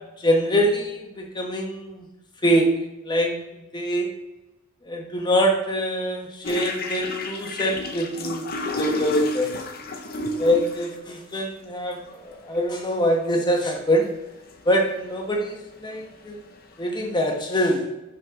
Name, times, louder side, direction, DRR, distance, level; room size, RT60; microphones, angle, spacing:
voice 1, 0.2-2.1 2.4-2.7 3.0-3.4 3.7-4.1 4.8-8.5 8.7-9.5 10.4-14.1 14.6-16.4 16.8-17.9, equal, 20° left, 1 dB, 1.1 m, -24 dB
sound 1, 6.4-11.0 12.0-12.1 12.5-12.6 13.0-13.4 13.8-14.2 14.5-16.9, left 1 dB, 45° left, 0.7 m, -31 dB
5.8 x 5.6 x 3.7 m, 0.99 s
head